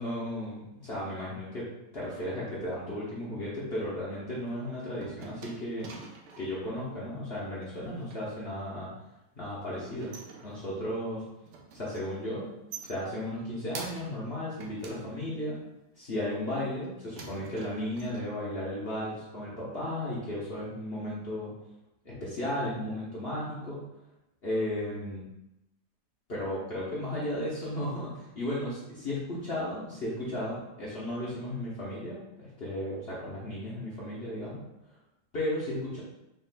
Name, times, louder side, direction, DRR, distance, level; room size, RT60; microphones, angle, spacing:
voice 1, 0.0-1.6 1.9-5.9 6.4-8.9 9.4-10.1 10.4-11.2 11.7-12.4 12.8-15.6 16.0-21.5 22.0-23.9 24.4-25.2 26.3-34.6 35.3-36.0, left 1 dB, 45° left, -7 dB, 0.9 m, -34 dB
sound 1, 4.4-6.6 7.6-8.2 9.6-10.9 11.3-12.2 12.5-14.3 14.6-15.7 16.3-16.9 17.2-18.2, right 4 dB, 85° right, 1.3 m, -47 dB
4.1 x 4.0 x 2.2 m, 0.90 s
omnidirectional pair, 1.8 m